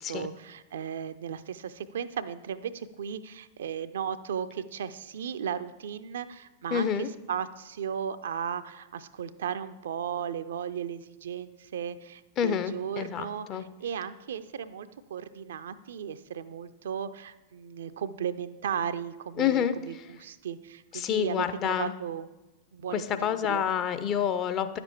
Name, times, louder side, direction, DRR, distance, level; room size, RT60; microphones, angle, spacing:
voice 1, 0.0-22.3 22.7-23.6, right 8 dB, 60° right, 12 dB, 0.4 m, -36 dB
voice 2, 6.7-7.1 12.4-13.6 19.4-19.7 20.9-21.9 22.9-24.8, left 9 dB, 35° left, 11 dB, 0.6 m, -28 dB
10.0 x 6.9 x 4.3 m, 1.1 s
figure-of-eight pair, 90°, 0 cm